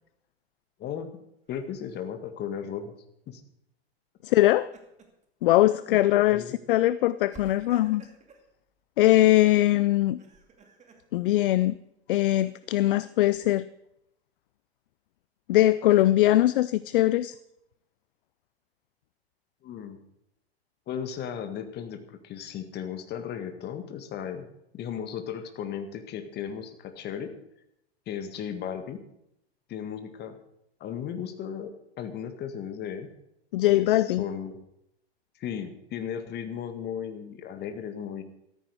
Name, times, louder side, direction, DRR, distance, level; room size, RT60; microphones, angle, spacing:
voice 1, 0.8-1.2 1.5-2.9 3.3-3.4 5.9-6.0 6.3-6.6 19.6-20.0 20.9-24.5 24.7-27.3 28.1-29.0 29.7-30.4 30.8-31.7 32.0-33.1 33.7-34.6 35.4-38.2, left 8 dB, 30° left, 8 dB, 1.8 m, -35 dB
Laughter, 1.5-2.0 4.3-5.2 5.7-5.8 7.3-8.5 10.0-11.0 12.1-13.4, right 4 dB, 20° right, 2.5 m, -53 dB
voice 2, 4.2-4.7 5.4-8.0 9.0-10.2 11.1-11.8 12.1-13.6 15.5-17.4 33.5-34.2, left 15 dB, 55° left, 17 dB, 0.5 m, -21 dB
14.0 x 13.5 x 4.9 m, 0.81 s
figure-of-eight pair, 95°, 32 cm